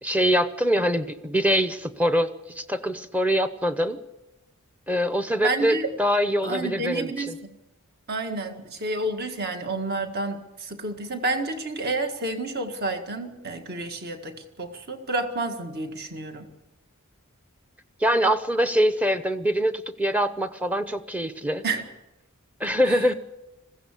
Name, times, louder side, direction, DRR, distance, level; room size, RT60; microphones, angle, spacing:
voice 1, 0.0-4.0 4.9-7.4 18.0-21.6 22.6-23.1, equal, 5° right, 12 dB, 0.8 m, -24 dB
voice 2, 5.4-5.9 6.4-7.4 8.1-16.5 21.6-21.8 22.6-23.1, right 2 dB, 45° right, 6 dB, 1.8 m, -30 dB
20.5 x 16.0 x 8.3 m, 0.96 s
head